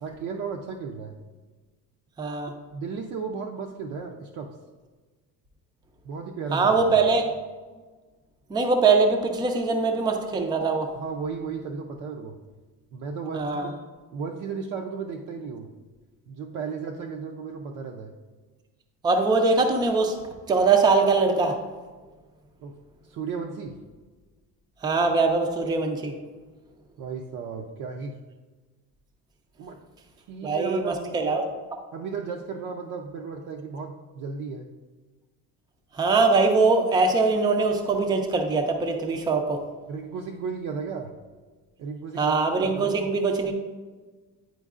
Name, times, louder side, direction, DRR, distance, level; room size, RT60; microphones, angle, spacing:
voice 1, 0.0-1.2 2.7-4.5 6.0-6.9 11.0-12.4 12.9-13.8 14.1-15.7 16.3-18.2 22.6-22.7 23.0-23.8 27.0-28.2 29.6-29.8 30.2-31.0 31.9-34.7 39.9-41.1 41.8-42.4 42.6-42.9, right 5 dB, 60° right, 1 dB, 0.5 m, -34 dB
voice 2, 2.2-2.5 6.5-7.2 8.5-10.9 13.3-13.7 19.0-20.2 20.5-21.6 24.8-26.2 30.4-31.5 35.9-39.6 42.2-43.5, right 4 dB, 10° right, 4 dB, 0.4 m, -22 dB
9.1 x 4.5 x 2.4 m, 1.3 s
cardioid pair, 160°, 35 cm